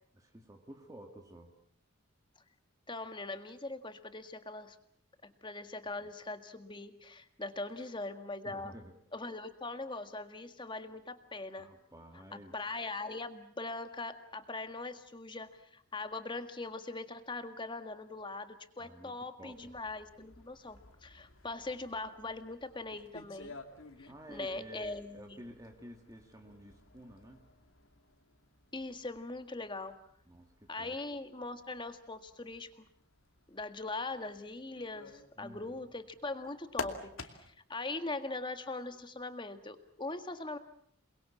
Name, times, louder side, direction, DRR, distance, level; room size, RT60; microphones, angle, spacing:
voice 1, 0.1-1.5 6.0-6.1 7.8-7.9 8.4-9.0 11.6-12.6 18.8-19.7 24.1-27.5 30.3-31.0 35.4-35.9, equal, 15° right, 3 dB, 2.1 m, -52 dB
voice 2, 2.9-4.8 5.2-8.7 9.1-11.7 12.5-23.5 24.0-25.1 28.7-30.0 30.7-32.9 33.5-40.6, left 2 dB, 20° left, 8 dB, 1.8 m, -41 dB
sound 1, 19.5-37.7 38.7-39.1, left 3 dB, 70° left, 2.6 m, -51 dB
28.5 x 22.0 x 7.3 m, 0.66 s
head